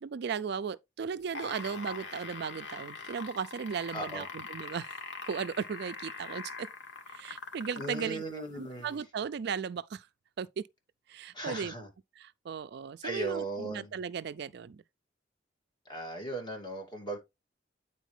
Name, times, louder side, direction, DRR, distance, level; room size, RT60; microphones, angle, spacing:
voice 1, 0.0-5.0 5.2-6.7 7.1-8.2 8.6-10.1 10.4-10.6 11.1-11.7 12.2-14.8, right 6 dB, 65° right, 0.4 m, -36 dB
sound 1, 1.2-8.1 9.0-9.1, left 4 dB, 85° left, 1.9 m, -42 dB
voice 2, 3.9-4.3 7.8-8.9 11.3-11.9 13.0-13.9 15.9-17.2, right 2 dB, 25° left, 2.4 m, -37 dB
9.2 x 4.4 x 3.2 m
head